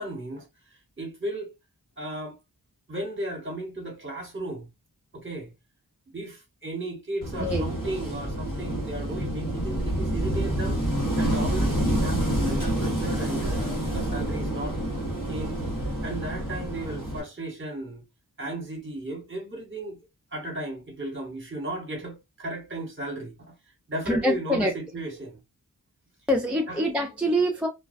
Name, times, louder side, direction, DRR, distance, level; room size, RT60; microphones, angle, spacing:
voice 1, 0.0-1.5 2.0-2.4 2.9-4.7 5.1-5.5 6.1-10.8 11.2-14.8 15.2-18.0 18.4-20.0 20.3-25.3 26.7-26.8, right 1 dB, 30° right, 1.0 m, -35 dB
Wind / Waves surf, 7.2-17.2, right 1 dB, 55° left, 1.1 m, -28 dB
voice 2, 24.1-24.7 26.3-27.7, equal, 5° right, 0.4 m, -24 dB
2.3 x 2.2 x 2.5 m
wide cardioid pair, 60°, 38 cm